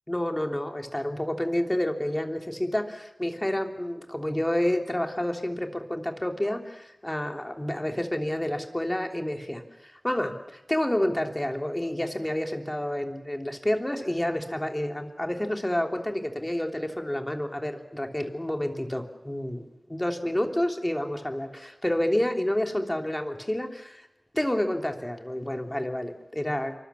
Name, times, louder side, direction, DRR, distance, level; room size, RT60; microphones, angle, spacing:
voice 1, 0.1-19.6 19.9-24.1 24.3-26.7, left 1 dB, 20° left, 4 dB, 3.1 m, -29 dB
27.0 x 24.5 x 7.1 m, 0.90 s
wide cardioid pair, 60°, 0 cm